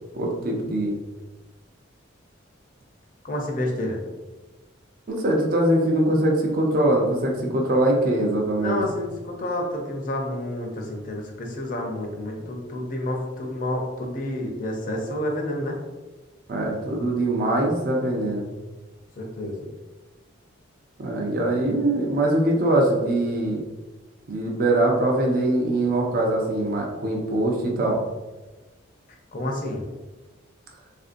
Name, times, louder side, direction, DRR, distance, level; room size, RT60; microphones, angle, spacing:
voice 1, 0.1-0.9 5.1-8.8 16.5-18.5 21.0-23.6 24.3-28.0, right 1 dB, 45° right, -1 dB, 0.5 m, -22 dB
voice 2, 3.2-4.0 8.6-15.8 19.2-19.7 29.3-29.8, left 1 dB, 40° left, 0 dB, 0.5 m, -29 dB
3.5 x 2.5 x 2.5 m, 1.2 s
head